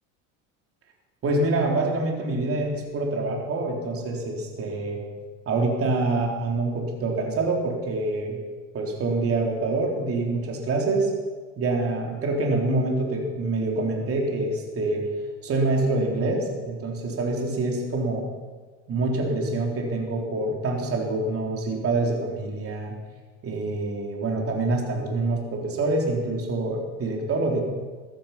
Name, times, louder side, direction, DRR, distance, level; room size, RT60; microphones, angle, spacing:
voice 1, 1.2-5.0 5.5-8.4 8.7-11.1 11.6-15.1 15.4-18.3 18.9-22.9 23.4-27.6, right 2 dB, 35° right, 0 dB, 3.6 m, -26 dB
15.5 x 12.0 x 5.8 m, 1.4 s
supercardioid pair, 110°, 37 cm